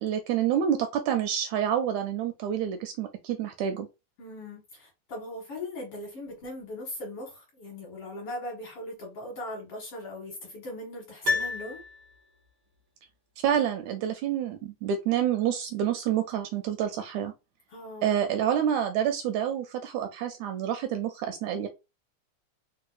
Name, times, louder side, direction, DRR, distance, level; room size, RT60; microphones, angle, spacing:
voice 1, 0.0-3.9 13.4-17.3 18.0-21.7, right 9 dB, 80° right, 1.7 m, -28 dB
voice 2, 4.2-11.8 17.7-18.2, left 1 dB, 55° left, 1.9 m, -39 dB
Piano, 11.2-12.5 12.8-12.9, left 3 dB, 65° right, 1.0 m, -31 dB
4.7 x 2.4 x 2.4 m
omnidirectional pair, 3.5 m